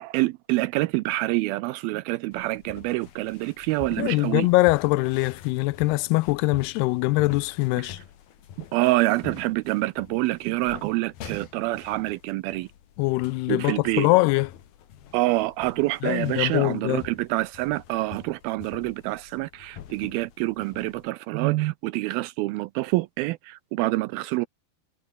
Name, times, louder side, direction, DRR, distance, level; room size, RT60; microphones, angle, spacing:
voice 1, 0.0-4.5 8.7-12.7 13.5-14.1 15.1-24.5, right 19 dB, 80° right, 2.2 m, -26 dB
sound 1, 2.3-21.1, left 10 dB, 65° left, 3.9 m, -46 dB
voice 2, 4.0-8.0 13.0-14.5 16.0-17.1, left 22 dB, 85° left, 2.5 m, -23 dB
omnidirectional pair, 4.7 m